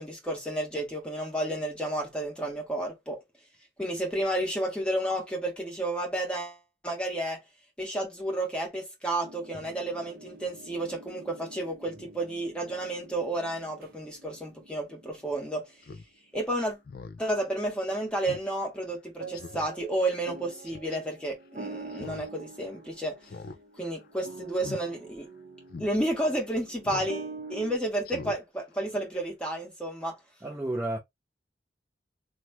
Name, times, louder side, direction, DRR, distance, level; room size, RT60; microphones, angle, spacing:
voice 1, 0.0-3.2 3.8-7.4 7.8-15.6 16.3-16.8 17.2-23.2 23.8-25.3 25.8-30.1, right 1 dB, 5° left, 1.1 m, -31 dB
sound 1, 9.2-15.5 19.2-27.8, right 3 dB, 55° right, 0.6 m, -46 dB
Speech synthesizer, 15.8-16.0 16.4-16.5 16.8-17.2 17.6-17.7 18.3-18.5 18.8-18.9 19.3-19.7 20.6-21.0 21.9-22.3 22.6-22.7 23.2-23.6 23.9-24.1 24.5-24.8 25.2-25.3 25.7-25.9 26.8-27.1 27.5-27.6 28.0-28.4 28.7-28.8, left 4 dB, 55° left, 0.4 m, -42 dB
voice 2, 30.4-31.0, right 1 dB, 15° right, 0.5 m, -31 dB
3.0 x 2.1 x 3.4 m
head